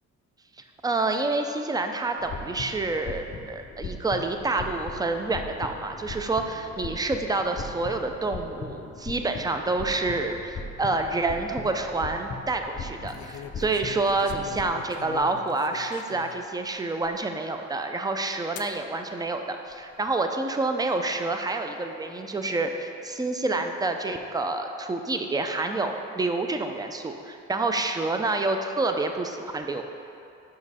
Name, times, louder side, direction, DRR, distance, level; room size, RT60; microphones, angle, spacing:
voice 1, 0.8-29.8, right 3 dB, 15° right, 5 dB, 0.4 m, -28 dB
sound 1, 2.2-14.7, left 3 dB, 35° left, 0.7 m, -39 dB
sound 2, 11.4-11.8 13.1-16.4 17.0-17.1 18.6-18.8 19.7-20.1, left 10 dB, 75° left, 0.5 m, -43 dB
5.9 x 5.1 x 4.1 m, 2.6 s
cardioid pair, 90°, 30 cm